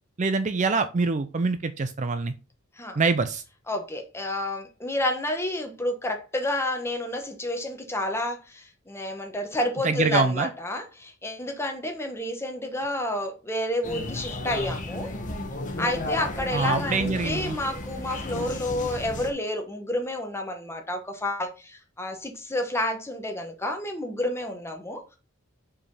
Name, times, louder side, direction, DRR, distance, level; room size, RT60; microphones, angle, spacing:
voice 1, 0.2-2.3 3.0-3.4 9.8-10.5 16.5-17.5, right 4 dB, 35° right, 0.5 m, -25 dB
voice 2, 3.7-15.1 15.8-25.2, left 1 dB, 10° left, 1.3 m, -30 dB
sound 1, 13.8-19.3, left 2 dB, 35° left, 1.2 m, -33 dB
5.2 x 4.9 x 5.4 m
head